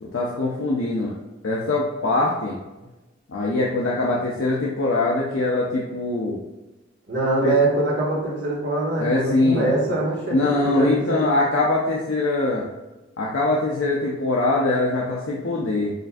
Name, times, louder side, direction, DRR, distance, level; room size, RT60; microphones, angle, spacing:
voice 1, 0.0-1.1 1.4-2.6 3.3-6.4 7.4-7.6 9.0-9.7 10.3-12.6 13.2-15.9, left 2 dB, 70° left, -3 dB, 0.5 m, -22 dB
voice 2, 7.1-11.3, right 2 dB, 60° right, -5 dB, 1.4 m, -23 dB
6.4 x 2.5 x 2.4 m, 1.1 s
head